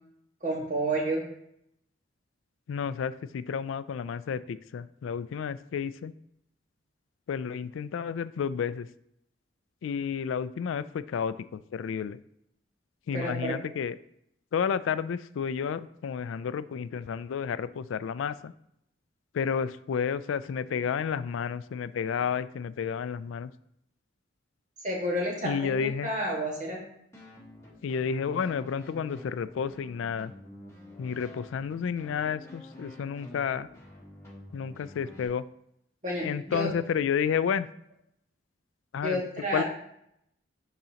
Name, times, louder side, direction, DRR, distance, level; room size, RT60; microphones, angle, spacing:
voice 1, 0.4-1.2 13.1-13.6 24.8-26.8 36.0-36.7 39.0-39.6, right 1 dB, 40° right, -3 dB, 1.8 m, -30 dB
voice 2, 2.7-6.1 7.3-8.9 9.8-12.2 13.1-14.0 14.5-18.5 19.3-23.5 25.4-26.1 27.8-30.3 31.0-33.7 34.5-35.4 36.2-37.7 38.9-39.2 39.5-39.6, left 7 dB, 85° left, 15 dB, 0.3 m, -31 dB
sound 1, 27.1-35.3, left 1 dB, 15° left, 1.4 m, -48 dB
10.5 x 3.9 x 2.9 m, 0.76 s
head